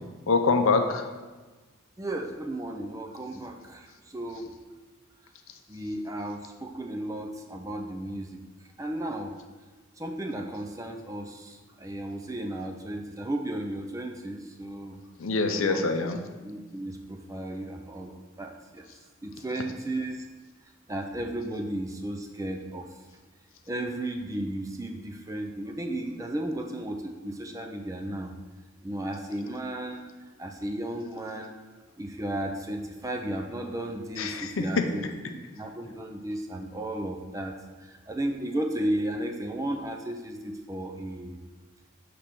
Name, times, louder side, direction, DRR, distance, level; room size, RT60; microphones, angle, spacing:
voice 1, 0.3-1.1 15.2-16.2 34.2-34.9, left 4 dB, 65° left, 6 dB, 0.6 m, -25 dB
voice 2, 2.0-4.5 5.7-8.4 8.8-9.3 10.0-15.0 15.5-15.8 16.4-20.2 20.9-22.9 23.7-28.3 28.8-30.1 30.4-31.5 32.0-35.0 35.5-41.4, right 1 dB, 15° right, 3 dB, 0.4 m, -34 dB
6.7 x 3.4 x 5.8 m, 1.3 s
head